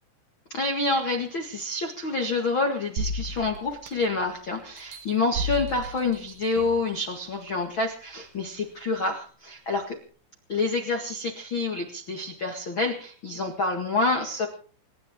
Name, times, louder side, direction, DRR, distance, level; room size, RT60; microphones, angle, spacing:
voice 1, 0.5-10.0 10.5-14.5, left 3 dB, 70° left, 3 dB, 1.1 m, -28 dB
sound 1, 3.0-4.3 4.8-6.9 7.5-7.6, equal, 70° right, 1.7 m, -34 dB
28.0 x 11.5 x 3.8 m, 0.41 s
omnidirectional pair, 5.9 m